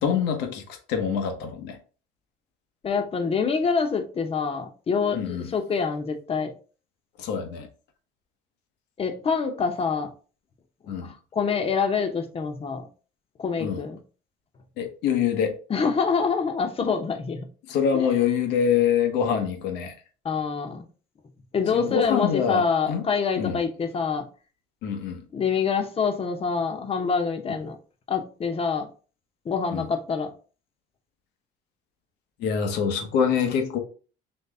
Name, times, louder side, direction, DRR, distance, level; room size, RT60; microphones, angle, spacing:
voice 1, 0.0-1.8 5.1-5.5 7.2-7.7 10.9-11.1 13.6-13.8 14.8-15.6 17.7-19.9 21.7-23.0 23.4-23.6 24.8-25.2 29.7-29.9 32.4-33.8, left 7 dB, 90° left, 1.1 m, -25 dB
voice 2, 2.8-6.5 9.0-10.1 10.8-12.9 13.4-14.0 15.7-17.5 17.9-18.2 20.2-20.8 21.5-24.3 25.3-27.8 28.1-28.9 29.4-30.3, left 5 dB, 35° left, 0.9 m, -26 dB
4.2 x 3.1 x 3.5 m
cardioid pair, 110°, 17 cm